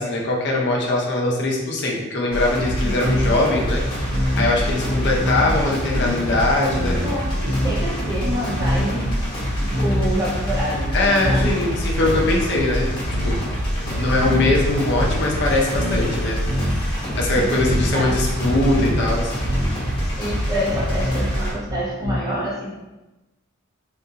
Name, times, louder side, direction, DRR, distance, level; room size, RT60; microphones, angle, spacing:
voice 1, 0.0-7.0 10.9-13.4 14.0-16.4 17.2-19.3, left 2 dB, 50° left, -2 dB, 0.6 m, -21 dB
sound 1, 2.3-21.5, equal, 20° left, 1.0 m, -26 dB
sound 2, 3.0-3.4 3.8-4.5 4.8-5.7 5.9-7.1 7.4-7.9 8.2-10.2 10.5-10.9 11.2-12.5 12.7-13.5 13.8-16.9 17.2-18.1 18.3-19.1 19.5-22.2, equal, 75° right, 0.8 m, -25 dB
voice 2, 4.6-5.1 5.5-5.7 7.0-9.3 9.6-11.6 13.9-14.0 16.9-17.6 17.9-18.2 20.2-22.7, equal, 15° right, -6 dB, 0.8 m, -28 dB
3.6 x 2.5 x 2.7 m, 1.0 s
head